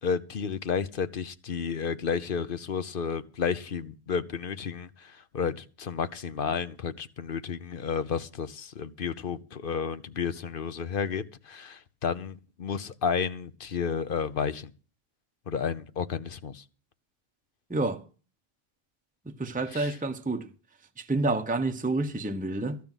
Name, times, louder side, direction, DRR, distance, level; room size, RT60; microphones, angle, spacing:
voice 1, 0.0-14.7 15.5-16.6 19.7-20.0, left 6 dB, 60° left, 1.0 m, -32 dB
voice 2, 19.4-20.4 21.1-22.8, right 2 dB, 10° right, 0.8 m, -28 dB
14.5 x 6.0 x 9.0 m
omnidirectional pair, 1.0 m